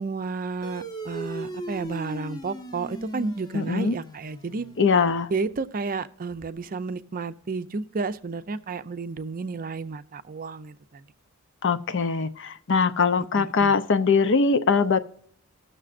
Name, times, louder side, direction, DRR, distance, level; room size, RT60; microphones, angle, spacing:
voice 1, 0.0-4.7 5.3-11.0 13.3-13.7, right 4 dB, 40° right, 12 dB, 0.5 m, -32 dB
sound 1, 0.6-5.5, right 1 dB, 20° left, 0.8 m, -38 dB
voice 2, 3.5-4.0 4.8-5.3 11.6-15.0, left 5 dB, 60° left, 12 dB, 0.6 m, -22 dB
19.0 x 6.6 x 2.5 m, 0.65 s
head